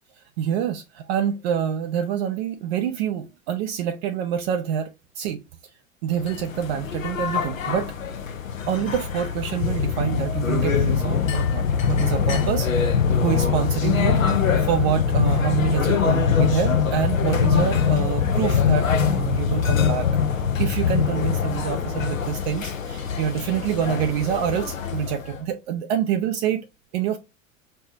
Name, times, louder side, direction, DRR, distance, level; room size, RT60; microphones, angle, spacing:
voice 1, 0.4-5.4 6.0-7.9 8.7-14.2 14.6-20.1 20.6-26.6 26.9-27.2, right 9 dB, 50° right, 0.6 m, -26 dB
sound 1, 6.2-25.4, left 6 dB, 80° left, 0.8 m, -23 dB
5.4 x 2.8 x 2.6 m
figure-of-eight pair, 80°, 39 cm